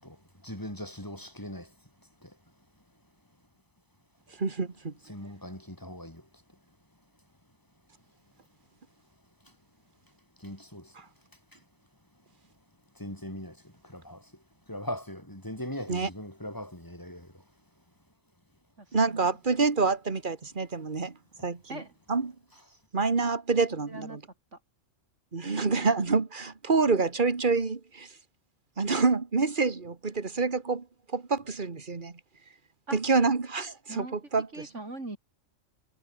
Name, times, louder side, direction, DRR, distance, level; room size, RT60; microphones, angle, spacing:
voice 1, 0.4-1.7 2.2-2.3 5.0-6.2 10.4-10.9 13.0-13.6 13.8-14.2 14.7-17.3 21.4-21.5, left 1 dB, 15° left, 7.8 m, -39 dB
voice 2, 4.4-4.9 15.9-16.1 18.9-21.2 21.4-21.8 22.1-22.3 22.9-24.2 25.3-28.1 28.8-30.9 31.1-32.2 32.9-34.5, right 4 dB, 40° right, 1.9 m, -27 dB
voice 3, 18.8-19.4 21.7-21.9 22.7-22.8 23.9-24.2 24.5-24.6 32.9-33.0 33.9-34.2 34.5-35.2, right 2 dB, 65° right, 4.8 m, -41 dB
omnidirectional pair, 1.3 m